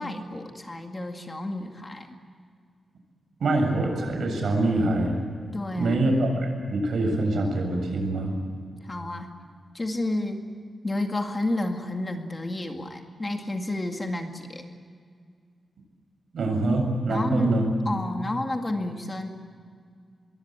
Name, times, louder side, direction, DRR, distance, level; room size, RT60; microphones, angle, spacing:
voice 1, 0.0-2.2 5.5-6.1 8.8-9.3 9.7-10.4 10.8-14.6 17.1-19.3, left 2 dB, 20° left, 4 dB, 2.1 m, -31 dB
voice 2, 3.4-5.2 5.7-8.4 16.3-17.7, right 2 dB, 70° right, 3 dB, 7.6 m, -24 dB
25.5 x 23.0 x 9.0 m, 2.1 s
wide cardioid pair, 175°, 0 cm